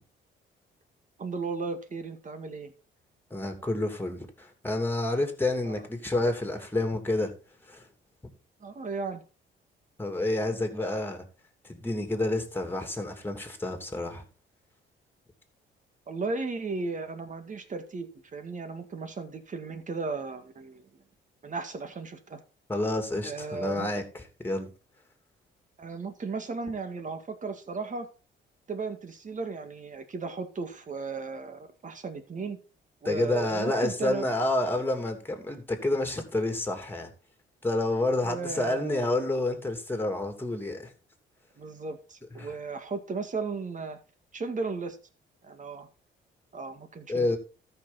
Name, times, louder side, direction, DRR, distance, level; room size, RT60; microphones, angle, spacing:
voice 1, 1.2-2.7 5.6-5.7 8.6-9.2 16.1-21.0 21.4-22.4 23.2-23.9 25.8-28.1 28.7-32.6 33.0-34.3 38.2-39.1 41.6-44.0 44.3-45.0 45.4-45.9 46.5-47.4, right 4 dB, 40° right, 2.0 m, -35 dB
voice 2, 3.3-7.3 7.7-7.8 10.0-11.2 11.6-14.2 22.7-24.7 33.0-37.1 37.6-40.9 42.4-42.5 47.1-47.4, left 2 dB, 10° left, 2.9 m, -29 dB
13.5 x 6.0 x 4.1 m
cardioid pair, 90°, 20 cm